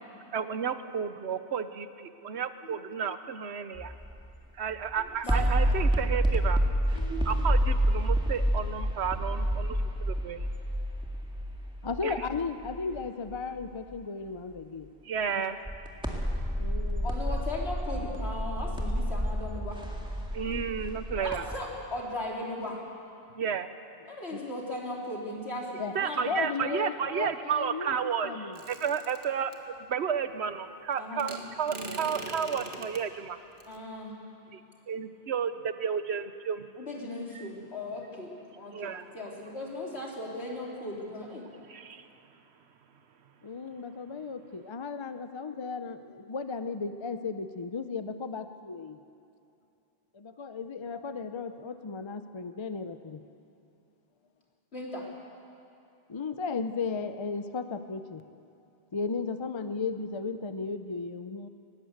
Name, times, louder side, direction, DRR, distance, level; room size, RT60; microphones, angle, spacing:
voice 1, 0.3-3.9 4.5-10.5 12.0-12.3 15.0-15.6 20.3-21.6 23.4-23.7 25.9-29.6 29.9-33.4 34.5-36.7 37.3-37.5 38.7-39.1 41.6-42.6, right 7 dB, 80° right, 11 dB, 1.2 m, -32 dB
sound 1, 3.8-4.3 4.7-13.0 13.3-13.4 15.7-21.6, equal, 5° right, 2.1 m, -29 dB
voice 2, 7.0-7.4 11.8-14.9 15.4-15.5 16.6-17.1 24.3-24.4 25.8-25.9 26.3-28.0 28.2-28.5 43.4-49.0 50.1-53.2 56.1-58.2 58.9-61.5, left 4 dB, 30° left, 10 dB, 0.6 m, -35 dB
voice 3, 17.0-19.8 21.2-22.8 24.1-26.3 31.0-31.3 33.7-34.1 36.8-41.5 54.7-55.0, left 1 dB, 75° left, -2 dB, 3.7 m, -37 dB
sound 2, 28.6-29.6 31.2-33.0 33.6-33.8, right 2 dB, 55° right, 1.8 m, -41 dB
20.0 x 18.0 x 8.0 m, 2.6 s
omnidirectional pair, 1.1 m